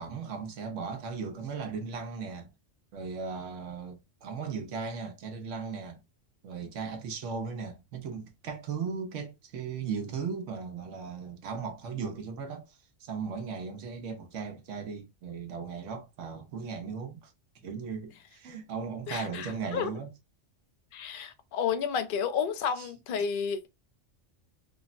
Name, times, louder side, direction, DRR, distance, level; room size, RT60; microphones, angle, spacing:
voice 1, 0.0-2.5 2.9-6.0 6.4-12.7 13.0-17.3 17.6-20.1 22.8-22.9, right 5 dB, 85° right, 1.1 m, -37 dB
voice 2, 19.1-19.9 20.9-23.7, left 7 dB, 60° left, 0.6 m, -31 dB
3.5 x 2.0 x 2.4 m
omnidirectional pair, 1.2 m